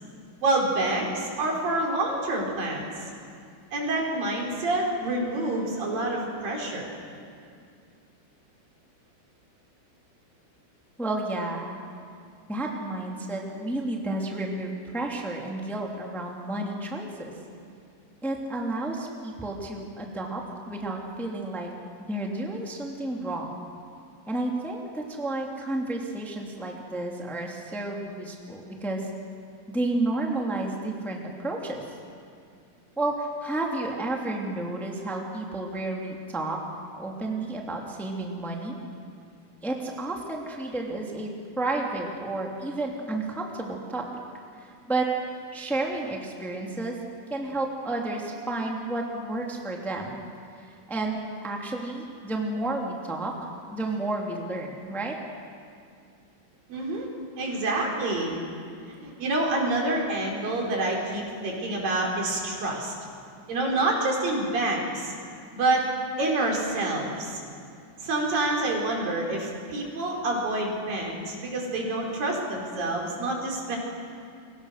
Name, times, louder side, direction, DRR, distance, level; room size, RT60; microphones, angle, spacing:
voice 1, 0.4-2.9 3.7-6.9 56.7-57.1 57.4-58.4 58.9-62.9 63.5-65.1 65.5-65.9 66.2-67.4 68.0-73.8, right 2 dB, 80° right, -1 dB, 6.2 m, -27 dB
voice 2, 11.0-11.8 12.5-17.3 18.2-20.4 20.7-21.7 22.1-23.6 24.3-29.1 29.7-31.8 33.0-36.6 36.9-38.8 39.6-41.3 41.6-44.1 44.6-45.1 45.5-47.0 47.3-50.2 50.6-53.3 53.7-55.1, right 2 dB, ahead, 0 dB, 2.0 m, -31 dB
29.0 x 24.0 x 6.6 m, 2.3 s
omnidirectional pair, 4.0 m